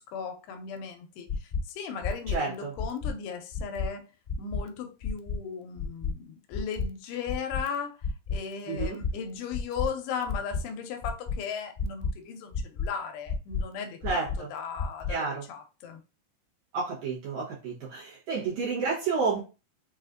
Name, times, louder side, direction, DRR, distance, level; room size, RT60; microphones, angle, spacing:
voice 1, 0.0-4.1 4.4-8.0 8.3-16.0, left 6 dB, 85° left, 2.5 m, -37 dB
sound 1, 1.3-1.6 2.0-2.4 2.8-3.1 3.5-3.9 4.3-4.6 5.0-5.4 5.8-6.1 6.5-6.9 7.3-7.6 8.0-8.4 8.8-9.1 9.5-9.9 10.3-10.6 11.0-11.4 11.8-12.1 12.5-12.9 13.3-13.6 14.0-14.4 14.8-15.1, left 5 dB, 35° left, 1.3 m, -30 dB
voice 2, 2.3-2.7 8.7-9.0 14.0-14.5 15.1-15.5 16.7-19.4, right 4 dB, 65° right, 2.0 m, -30 dB
6.1 x 2.4 x 2.5 m
omnidirectional pair, 4.5 m